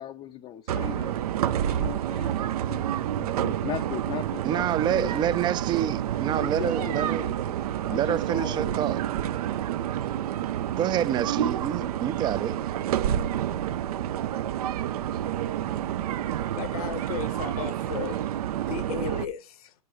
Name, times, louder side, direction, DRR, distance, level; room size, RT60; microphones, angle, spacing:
voice 1, 0.0-5.5 6.3-7.6 7.9-8.8, left 11 dB, 30° left, 0.5 m, -38 dB
sound 1, 0.7-19.3, right 11 dB, 75° right, 0.6 m, -29 dB
voice 2, 4.4-7.3 7.9-9.0 10.7-12.6, right 11 dB, 25° right, 0.4 m, -27 dB
voice 3, 16.6-18.2 18.6-19.7, left 9 dB, 70° left, 1.0 m, -35 dB
12.0 x 5.3 x 3.1 m
hypercardioid pair, 130°, 19 cm